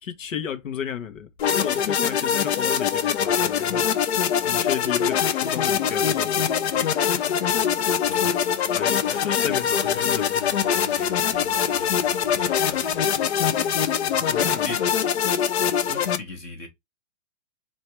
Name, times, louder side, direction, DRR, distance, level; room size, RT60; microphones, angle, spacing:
voice 1, 0.0-3.9 4.4-6.3 8.7-10.3 14.3-14.7, left 8 dB, 80° left, 1.3 m, -33 dB
sound 1, 1.4-16.2, left 8 dB, 55° left, 0.7 m, -23 dB
voice 2, 8.1-8.5 9.0-13.1 14.3-14.9 15.9-16.7, left 3 dB, 15° left, 0.6 m, -39 dB
3.3 x 3.0 x 4.3 m
hypercardioid pair, 165°, 38 cm